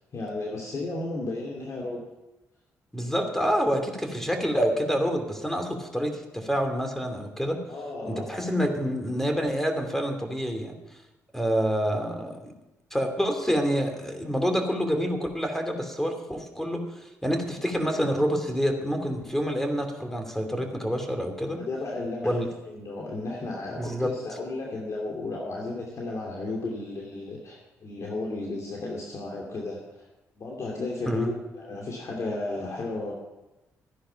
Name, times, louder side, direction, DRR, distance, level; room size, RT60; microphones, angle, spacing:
voice 1, 0.1-2.0 7.7-8.5 21.6-30.1 30.4-33.1, left 2 dB, 55° left, -2 dB, 2.7 m, -34 dB
voice 2, 2.9-7.6 8.0-10.7 11.3-12.5 12.9-21.6 22.2-22.5 23.7-24.1 31.1-31.3, equal, 5° left, 5 dB, 2.7 m, -27 dB
14.0 x 10.0 x 5.8 m, 1.0 s
supercardioid pair, 65°, 6 cm